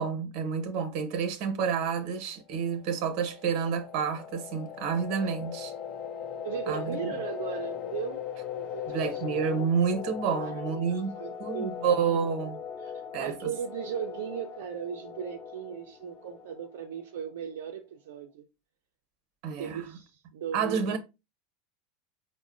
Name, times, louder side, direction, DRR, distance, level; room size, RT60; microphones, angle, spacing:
voice 1, 0.0-5.7 6.7-7.0 8.9-12.6 13.1-13.3 19.4-19.8 20.5-21.0, right 6 dB, 55° right, 0.9 m, -29 dB
sound 1, 2.6-17.2, left 8 dB, 45° left, 0.6 m, -39 dB
voice 2, 6.4-9.2 10.3-10.6 10.9-12.1 12.8-18.4 19.6-21.0, right 8 dB, 85° right, 0.4 m, -37 dB
5.1 x 2.1 x 2.5 m
supercardioid pair, 130°, 0 cm